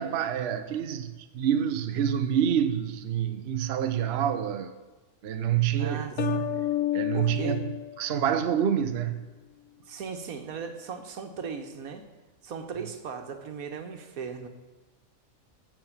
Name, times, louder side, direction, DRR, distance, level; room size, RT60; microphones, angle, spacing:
voice 1, 0.0-4.7 5.2-6.7 6.9-9.3, right 9 dB, 55° right, 0.9 m, -27 dB
voice 2, 5.8-6.4 7.1-7.6 9.8-12.1 12.4-14.5, right 6 dB, 85° right, 1.6 m, -37 dB
sound 1, 6.2-8.8, left 13 dB, 70° left, 1.0 m, -31 dB
15.0 x 6.1 x 7.3 m
omnidirectional pair, 1.5 m